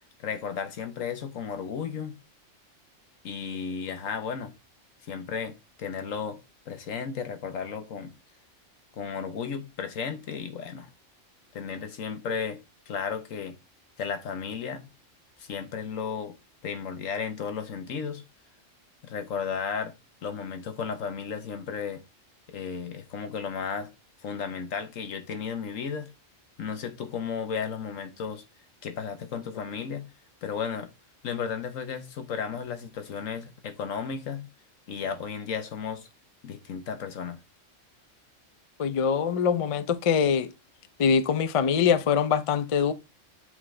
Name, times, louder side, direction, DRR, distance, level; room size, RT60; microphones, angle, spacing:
voice 1, 0.2-2.2 3.2-4.5 5.1-6.4 6.7-8.1 9.0-10.9 11.5-13.6 14.0-14.9 15.4-16.4 16.6-18.2 19.0-19.9 20.2-22.0 22.5-23.9 24.2-26.1 26.6-28.4 28.8-30.1 30.4-30.9 31.2-34.5 34.9-36.1 36.4-37.4, left 6 dB, 85° left, 1.3 m, -34 dB
voice 2, 38.8-40.5 41.0-42.9, left 6 dB, 50° left, 0.4 m, -23 dB
8.0 x 3.8 x 3.2 m
omnidirectional pair, 1.3 m